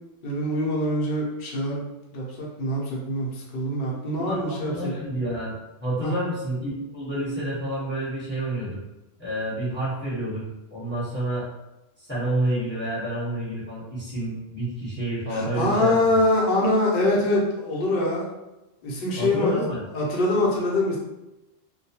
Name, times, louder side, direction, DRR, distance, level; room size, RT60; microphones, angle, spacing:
voice 1, 0.2-1.8 2.1-4.9 6.0-6.1 15.3-18.3 18.8-19.6 19.9-21.0, left 1 dB, 50° left, -4 dB, 0.7 m, -24 dB
voice 2, 4.1-5.5 5.8-8.8 9.2-10.4 10.7-11.5 12.0-16.2 19.2-19.8, right 1 dB, 10° left, -9 dB, 1.1 m, -29 dB
2.2 x 2.2 x 2.8 m, 0.99 s
omnidirectional pair, 1.3 m